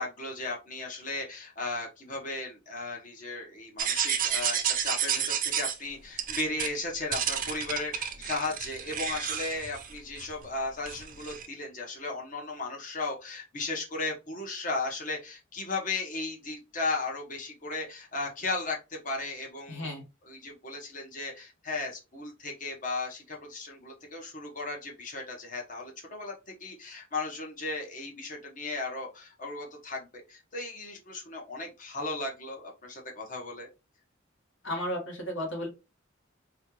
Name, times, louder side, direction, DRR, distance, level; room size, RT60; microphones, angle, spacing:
voice 1, 0.0-19.9 20.2-33.7, left 3 dB, 40° left, 0 dB, 1.1 m, -36 dB
sound 1, 3.8-5.8 6.2-6.7 7.1-10.5 10.9-11.5, right 8 dB, 45° right, 0.6 m, -31 dB
voice 2, 19.7-20.0 34.6-35.7, equal, 65° left, 1 dB, 1.5 m, -33 dB
4.4 x 2.3 x 3.0 m, 0.27 s
head